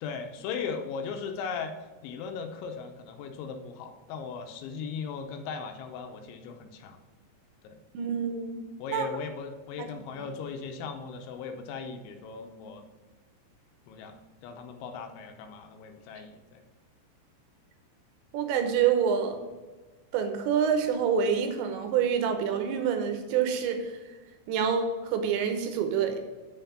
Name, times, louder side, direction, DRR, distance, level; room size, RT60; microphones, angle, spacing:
voice 1, 0.0-1.7 2.0-7.0 7.6-7.8 8.8-12.8 13.9-14.2 14.4-16.6, left 5 dB, 90° left, 6 dB, 3.1 m, -38 dB
voice 2, 7.9-9.1 18.3-19.4 20.1-24.0 24.5-26.2, right 7 dB, 80° right, 6 dB, 3.0 m, -27 dB
6.9 x 5.7 x 6.9 m, 1.3 s
omnidirectional pair, 5.4 m